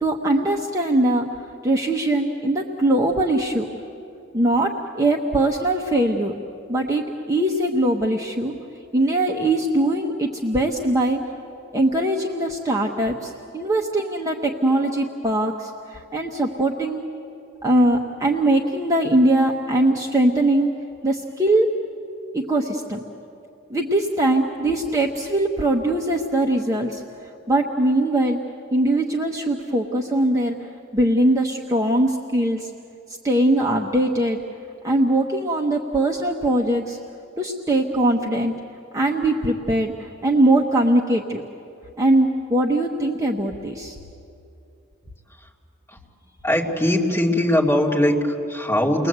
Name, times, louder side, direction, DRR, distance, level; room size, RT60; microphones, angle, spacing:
voice 1, 0.0-1.3 1.6-3.7 4.3-6.4 6.7-8.5 8.9-11.2 11.7-17.1 17.6-20.7 21.0-21.7 22.3-23.0 23.7-27.0 27.5-28.4 28.7-30.6 30.9-32.7 33.2-34.4 34.8-37.0 37.4-38.5 38.9-41.4 42.0-43.9, right 1 dB, 15° right, -1 dB, 1.0 m, -21 dB
voice 2, 46.4-49.1, left 1 dB, 15° left, -3 dB, 2.4 m, -21 dB
30.0 x 21.0 x 8.1 m, 2.7 s
head